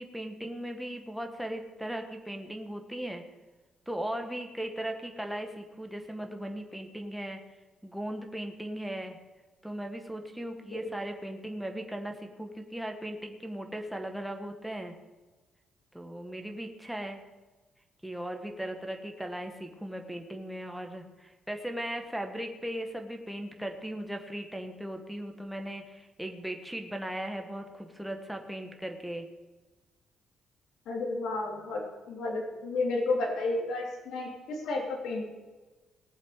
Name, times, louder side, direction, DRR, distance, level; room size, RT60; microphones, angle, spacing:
voice 1, 0.0-3.2 3.9-7.4 7.8-9.2 9.6-14.9 15.9-17.2 18.0-29.3, right 1 dB, 5° right, 4 dB, 1.5 m, -38 dB
voice 2, 30.9-31.8 32.1-35.2, left 2 dB, 80° left, 1 dB, 2.8 m, -31 dB
19.0 x 7.3 x 5.0 m, 1.2 s
cardioid pair, 90°, 0 cm